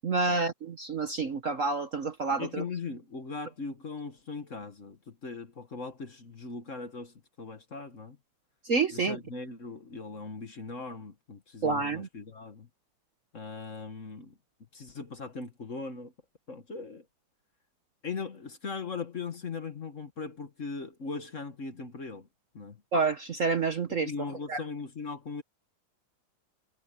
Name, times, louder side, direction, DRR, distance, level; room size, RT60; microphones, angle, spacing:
voice 1, 0.0-2.6 8.6-9.2 11.6-12.1 22.9-24.1 24.5-24.6, right 4 dB, 45° right, 1.2 m, -28 dB
voice 2, 2.4-8.2 8.9-12.7 13.3-14.4 14.7-16.1 16.5-17.0 18.0-22.3 22.5-22.8 24.0-25.4, left 4 dB, 40° left, 1.7 m, -39 dB
omnidirectional pair, 2.2 m